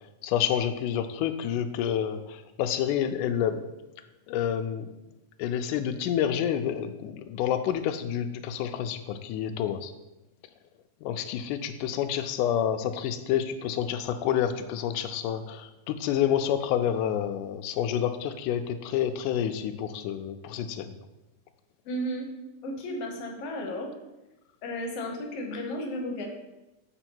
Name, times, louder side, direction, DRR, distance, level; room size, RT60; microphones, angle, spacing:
voice 1, 0.2-3.6 4.3-4.9 5.4-9.9 11.0-21.0, left 9 dB, 90° left, 9 dB, 2.1 m, -28 dB
voice 2, 21.8-22.3 22.6-23.9 24.6-26.3, equal, 65° left, 2 dB, 1.7 m, -33 dB
7.8 x 4.4 x 4.4 m, 0.98 s
omnidirectional pair, 3.5 m